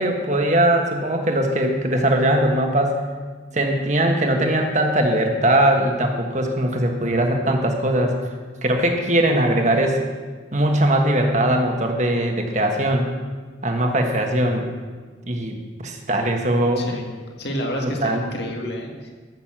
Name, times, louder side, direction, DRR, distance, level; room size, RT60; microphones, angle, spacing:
voice 1, 0.0-3.0 3.5-8.1 8.6-10.0 10.5-13.1 13.6-14.7 15.3-16.8 17.8-18.3, right 1 dB, 40° right, 3 dB, 1.5 m, -20 dB
voice 2, 16.8-17.1 17.4-19.1, equal, 65° left, 1 dB, 2.0 m, -29 dB
14.0 x 6.5 x 7.5 m, 1.5 s
head